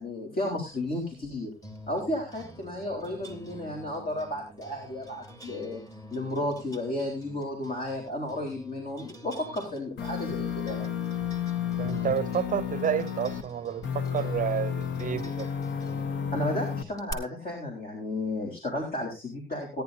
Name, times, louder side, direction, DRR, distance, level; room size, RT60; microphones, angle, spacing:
voice 1, 0.0-1.5 1.9-5.8 6.1-10.9 16.3-19.8, left 1 dB, 50° left, 4.1 m, -33 dB
sound 1, 0.7-17.1, equal, 20° left, 2.6 m, -48 dB
sound 2, 10.0-13.4 13.8-16.8, left 8 dB, 70° left, 1.1 m, -32 dB
voice 2, 11.8-15.5, right 9 dB, 45° right, 0.6 m, -30 dB
17.5 x 10.5 x 2.7 m
cardioid pair, 90°, 20 cm